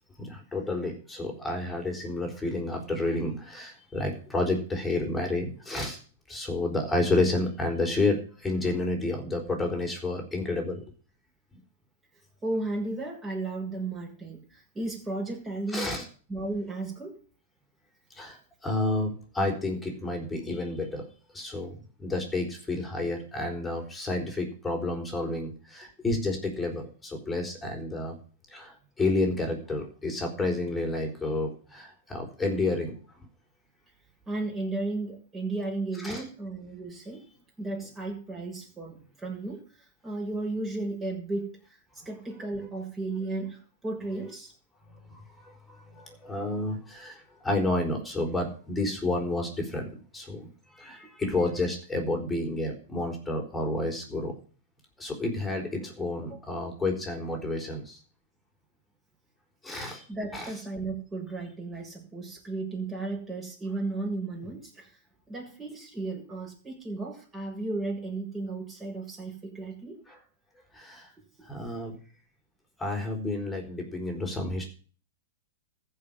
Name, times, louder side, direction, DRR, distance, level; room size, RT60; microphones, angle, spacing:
voice 1, 0.2-6.0 6.3-10.8 15.7-16.1 18.1-21.1 21.3-21.7 22.0-28.1 28.5-32.9 36.0-36.3 45.1-54.3 55.0-58.0 59.6-60.0 60.3-60.5 70.1-70.2 70.7-71.1 71.4-71.9 72.8-74.7, left 2 dB, 10° left, 1 dB, 4.5 m, -30 dB
voice 2, 12.4-15.9 16.3-17.2 34.3-37.2 37.6-39.6 40.0-41.5 42.1-44.5 51.0-51.1 56.3-56.4 60.1-64.9 65.3-70.0 71.4-71.5, right 2 dB, 15° right, -1 dB, 7.3 m, -34 dB
14.5 x 5.7 x 8.8 m, 0.40 s
hypercardioid pair, 120°, 0 cm